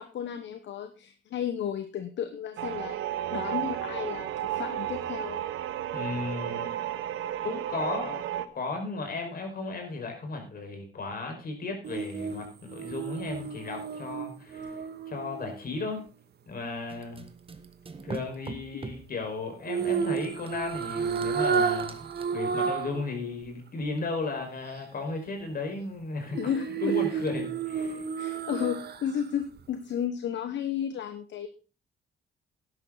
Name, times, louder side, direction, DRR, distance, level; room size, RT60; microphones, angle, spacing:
voice 1, 0.0-3.0 3.3-5.4 26.4-27.2 28.2-31.5, left 9 dB, 65° left, 9 dB, 1.2 m, -33 dB
sound 1, 2.6-8.5, right 12 dB, 85° right, 1.0 m, -33 dB
voice 2, 5.9-6.7 7.4-14.8 15.1-16.0 16.5-17.3 18.0-22.0 22.3-26.5 26.8-28.0, left 3 dB, 45° left, 3 dB, 5.2 m, -35 dB
sound 2, 11.8-16.1 19.7-23.0 23.4-23.5 26.3-29.2 29.6-29.7, right 6 dB, 55° right, 1.6 m, -31 dB
sound 3, 16.9-19.1 20.2-22.3, right 3 dB, 30° right, 1.6 m, -43 dB
12.5 x 10.5 x 4.0 m, 0.34 s
cardioid pair, 90°, 20 cm